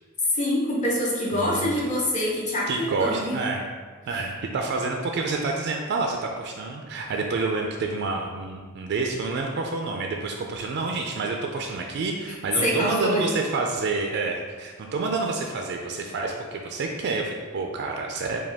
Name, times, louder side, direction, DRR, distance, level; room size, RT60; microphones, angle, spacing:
voice 1, 0.3-3.4 12.6-13.3, equal, 35° left, -4 dB, 0.9 m, -25 dB
voice 2, 1.3-1.7 2.7-3.6 4.1-18.4, right 3 dB, 55° right, 2 dB, 0.3 m, -28 dB
4.9 x 2.3 x 3.4 m, 1.5 s
head